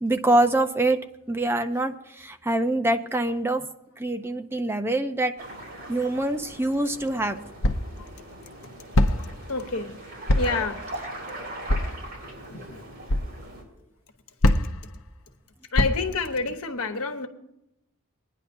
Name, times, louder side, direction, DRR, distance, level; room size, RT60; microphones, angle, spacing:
voice 1, 0.0-1.0 1.3-3.6 4.0-5.3 5.9-7.4, right 1 dB, 10° right, 0.5 m, -24 dB
sound 1, 5.4-13.6, right 1 dB, 45° right, 4.5 m, -40 dB
sound 2, 6.5-6.6 7.6-8.0 8.9-9.4 10.3-10.7 11.7-12.0 13.1-13.3 14.4-14.9 15.8-16.2, left 1 dB, 65° left, 0.7 m, -22 dB
voice 2, 9.5-10.0 10.4-10.8 12.4-12.8 15.7-17.3, left 4 dB, 85° left, 1.1 m, -28 dB
22.5 x 10.0 x 2.7 m
head